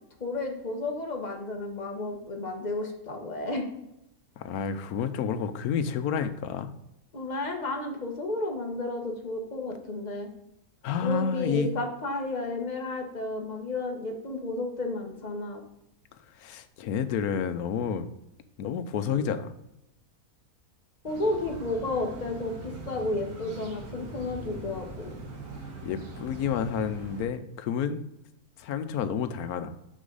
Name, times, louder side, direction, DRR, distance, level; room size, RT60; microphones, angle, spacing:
voice 1, 0.2-3.6 7.1-10.3 11.0-15.6 21.0-25.1, left 2 dB, 30° left, 2 dB, 1.3 m, -32 dB
voice 2, 4.4-6.7 10.8-11.7 16.4-18.1 18.6-19.5 25.8-28.1 28.6-29.7, left 7 dB, 90° left, 10 dB, 1.2 m, -30 dB
sound 1, 21.1-27.3, right 2 dB, 85° right, 1.9 m, -41 dB
6.4 x 6.3 x 3.9 m, 0.82 s
omnidirectional pair, 1.5 m